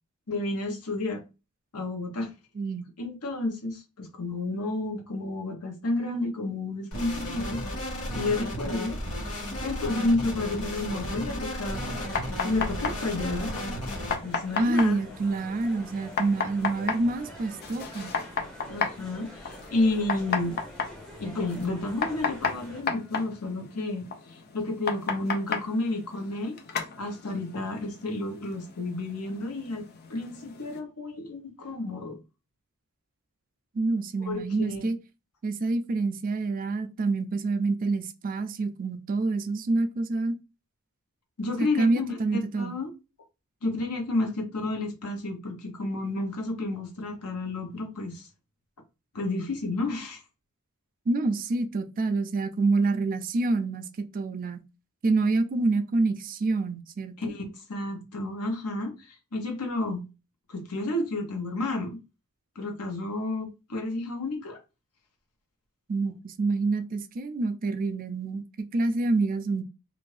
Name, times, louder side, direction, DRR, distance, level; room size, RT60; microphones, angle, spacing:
voice 1, 0.3-1.2 1.7-2.3 3.0-7.6 8.1-9.0 9.6-13.5 14.2-15.0 18.7-20.6 21.2-26.5 27.0-29.8 30.1-32.2 34.3-34.9 41.4-42.9 43.6-48.3 49.1-50.2 57.2-60.0 60.5-62.0 62.6-64.6, left 2 dB, 85° left, 0.9 m, -31 dB
voice 2, 2.6-2.9 14.6-18.1 33.7-35.0 35.4-40.4 41.6-42.8 51.1-54.6 55.0-57.3 65.9-69.6, right 3 dB, 40° right, 0.3 m, -27 dB
sound 1, 6.9-14.1, equal, 70° left, 1.3 m, -34 dB
sound 2, 11.7-30.8, left 5 dB, 45° left, 0.5 m, -35 dB
sound 3, 11.7-22.8, equal, 5° left, 0.9 m, -46 dB
2.6 x 2.5 x 3.2 m
head